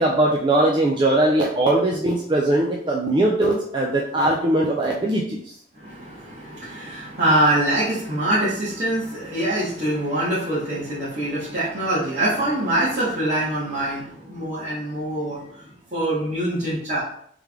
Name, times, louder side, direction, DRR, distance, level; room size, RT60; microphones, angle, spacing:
voice 1, 0.0-5.5, right 1 dB, 25° right, -1 dB, 0.4 m, -20 dB
voice 2, 5.7-17.0, right 1 dB, 40° right, -11 dB, 1.3 m, -24 dB
3.3 x 3.2 x 3.5 m, 0.65 s
head